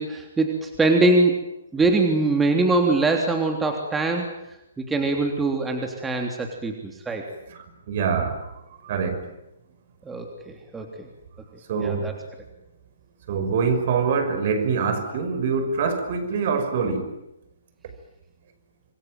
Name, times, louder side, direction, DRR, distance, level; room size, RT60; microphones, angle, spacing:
voice 1, 0.0-4.3 4.8-7.2 10.0-11.1 11.8-12.1, right 2 dB, 10° right, 3 dB, 3.3 m, -23 dB
voice 2, 7.9-8.5 8.8-9.2 11.7-12.2 13.3-17.1, right 5 dB, 50° right, 8 dB, 5.9 m, -24 dB
27.0 x 23.0 x 9.2 m, 0.88 s
figure-of-eight pair, 130°, 0 cm